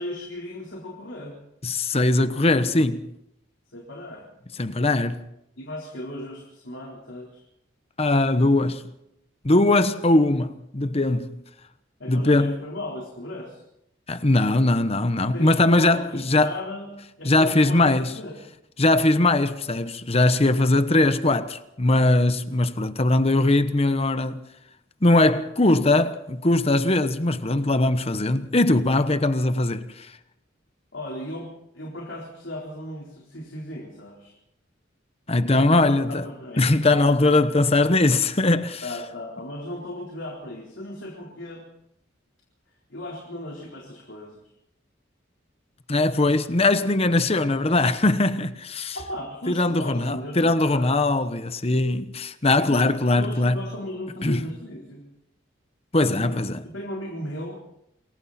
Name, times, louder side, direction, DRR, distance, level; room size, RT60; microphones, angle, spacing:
voice 1, 0.0-1.4 3.7-4.3 5.6-7.4 12.0-13.6 15.3-16.9 17.2-18.4 30.9-34.3 35.7-37.3 38.8-41.7 42.9-44.4 48.9-50.9 52.6-55.0 56.1-56.4 56.7-57.6, left 1 dB, 65° left, 4.2 m, -36 dB
voice 2, 1.6-3.1 4.6-5.2 8.0-8.8 9.4-11.4 12.1-12.6 14.1-16.5 17.2-18.1 18.8-24.4 25.0-30.1 35.3-36.3 36.6-38.8 45.9-49.0 49.5-53.6 54.2-54.4 55.9-56.6, left 2 dB, 30° left, 1.0 m, -21 dB
28.0 x 22.0 x 4.3 m
head